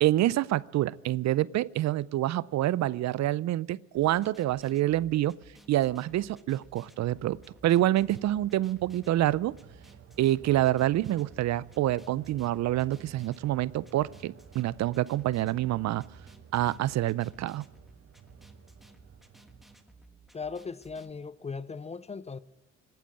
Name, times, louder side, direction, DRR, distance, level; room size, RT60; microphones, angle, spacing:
voice 1, 0.0-5.3 5.7-9.5 10.2-16.0 16.5-17.6, right 14 dB, 65° right, 0.5 m, -27 dB
Distorted Beat, 3.9-21.1, right 2 dB, ahead, 1.5 m, -57 dB
sound 1, 6.9-20.0, right 7 dB, 50° right, 0.9 m, -53 dB
voice 2, 20.3-22.4, left 5 dB, 20° left, 0.5 m, -38 dB
18.0 x 9.0 x 8.5 m
cardioid pair, 90°, 30 cm